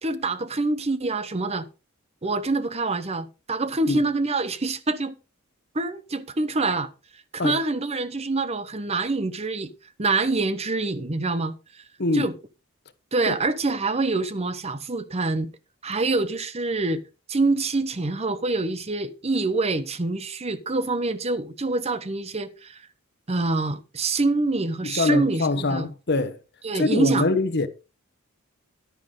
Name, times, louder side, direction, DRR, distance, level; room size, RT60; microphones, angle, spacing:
voice 1, 0.0-1.7 2.2-5.2 5.7-6.9 7.3-9.7 10.0-11.8 12.1-12.3 13.1-15.5 15.8-17.0 17.3-22.8 23.3-25.9 26.6-27.3, right 3 dB, 30° right, 0.8 m, -26 dB
voice 2, 12.0-12.3 13.3-13.4 24.8-26.4 26.7-27.7, left 3 dB, 50° left, 1.1 m, -24 dB
11.0 x 10.0 x 3.8 m
head